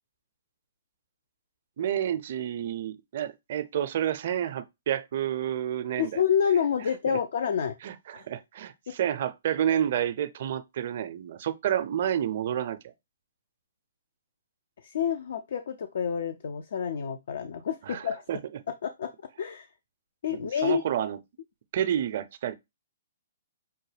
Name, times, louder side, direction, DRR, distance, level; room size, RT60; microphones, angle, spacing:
voice 1, 1.8-6.2 7.1-7.2 7.8-12.9 17.9-18.0 18.3-18.4 20.3-21.2 21.7-22.5, right 10 dB, 55° right, 0.5 m, -29 dB
voice 2, 6.0-7.7 8.1-8.3 14.8-18.2 18.8-19.1 19.4-19.7 20.2-20.8, left 8 dB, 65° left, 0.4 m, -28 dB
5.6 x 2.2 x 3.2 m
hypercardioid pair, 135°, 0 cm